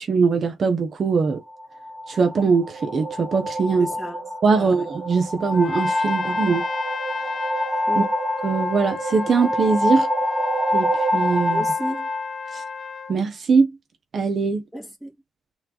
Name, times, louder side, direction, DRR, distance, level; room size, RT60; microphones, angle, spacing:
voice 1, 0.0-1.4 2.1-3.9 4.4-6.7 8.0-8.1 8.4-10.1 10.7-11.6 12.5-12.6 13.1-13.8 14.1-14.6, right 5 dB, 50° right, 0.8 m, -21 dB
sound 1, 1.5-13.2, equal, 25° right, 1.3 m, -26 dB
voice 2, 3.8-4.2 4.6-4.9 7.7-8.1 11.5-12.1 14.7-15.1, equal, ahead, 2.0 m, -34 dB
Trumpet, 5.5-13.2, left 6 dB, 45° left, 0.5 m, -34 dB
3.3 x 3.2 x 3.8 m
cardioid pair, 90°, 0 cm